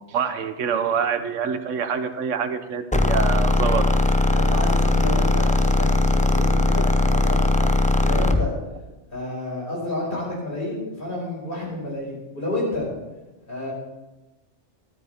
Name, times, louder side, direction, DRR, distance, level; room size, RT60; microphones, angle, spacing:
voice 1, 0.0-3.8, right 7 dB, 85° right, 9 dB, 1.2 m, -26 dB
sound 1, 2.9-8.5, left 2 dB, 10° left, 0.3 m, -19 dB
voice 2, 4.3-8.5 9.1-12.9 13.5-13.7, left 1 dB, 45° left, -4 dB, 5.3 m, -30 dB
13.5 x 12.0 x 3.5 m, 1.1 s
omnidirectional pair, 1.3 m